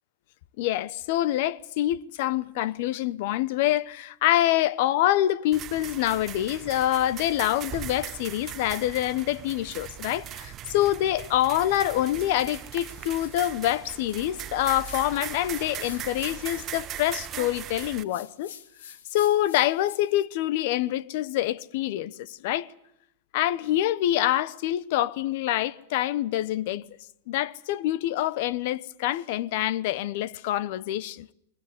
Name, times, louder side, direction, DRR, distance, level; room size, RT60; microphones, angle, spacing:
voice 1, 0.6-18.5 19.1-22.7 23.3-26.8 27.3-31.3, left 13 dB, 60° left, 1.0 m, -26 dB
sound 1, 5.5-18.0, right 11 dB, 30° right, 1.0 m, -39 dB
sound 2, 11.6-20.3, left 8 dB, 80° left, 2.0 m, -49 dB
22.0 x 20.0 x 9.6 m
hypercardioid pair, 125°, 0 cm